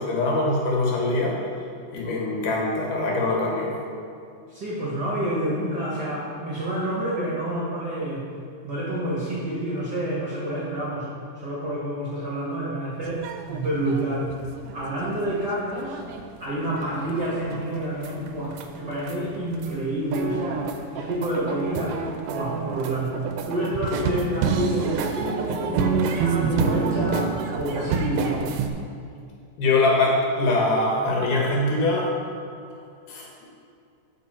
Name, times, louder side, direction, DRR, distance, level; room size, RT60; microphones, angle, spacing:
voice 1, 0.0-1.4 1.9-3.7 29.6-32.1 33.1-33.5, left 2 dB, 90° left, -2 dB, 3.0 m, -23 dB
voice 2, 4.5-8.2 8.6-11.1 11.4-13.2 13.5-14.3 14.7-16.0 16.4-20.6 20.9-21.9 22.3-23.2 23.5-27.3 27.6-28.4, right 1 dB, 50° right, -6 dB, 1.4 m, -28 dB
sound 1, 13.0-16.3 16.7-18.6 18.9-19.8 20.1-28.7, right 5 dB, 75° right, 1.7 m, -28 dB
11.0 x 5.2 x 4.4 m, 2.4 s
omnidirectional pair, 3.6 m